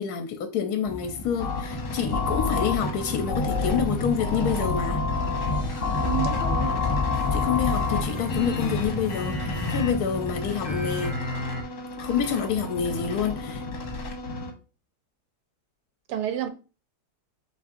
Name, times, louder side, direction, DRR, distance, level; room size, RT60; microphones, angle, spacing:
voice 1, 0.0-5.0 7.3-11.2 12.0-13.6, left 7 dB, 75° left, 1.1 m, -27 dB
sound 1, 0.8-11.1, equal, 30° left, 0.5 m, -33 dB
sound 2, 1.4-14.5, left 4 dB, 60° left, 1.2 m, -29 dB
voice 2, 6.0-6.8 16.1-16.5, right 10 dB, 80° right, 1.2 m, -29 dB
6.0 x 2.9 x 2.5 m
omnidirectional pair, 1.7 m